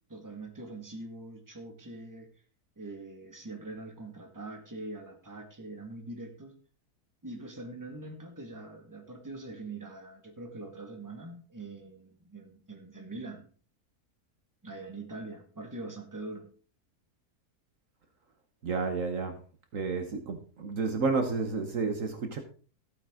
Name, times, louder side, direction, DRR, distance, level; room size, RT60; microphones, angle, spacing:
voice 1, 0.1-2.3 2.8-6.6 7.2-13.5 14.6-16.5, right 2 dB, 10° right, 4 dB, 1.8 m, -43 dB
voice 2, 18.6-19.4 19.7-22.4, right 4 dB, 60° right, 6 dB, 1.5 m, -31 dB
15.0 x 8.6 x 3.7 m, 0.40 s
omnidirectional pair, 1.6 m